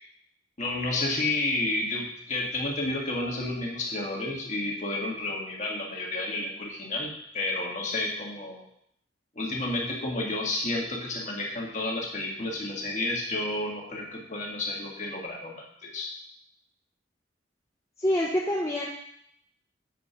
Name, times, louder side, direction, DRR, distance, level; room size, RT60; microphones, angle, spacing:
voice 1, 0.6-8.6 9.4-16.1, left 2 dB, 40° left, -2 dB, 1.9 m, -31 dB
voice 2, 18.0-18.9, left 1 dB, 15° left, -3 dB, 0.7 m, -26 dB
7.7 x 4.4 x 5.6 m, 0.70 s
head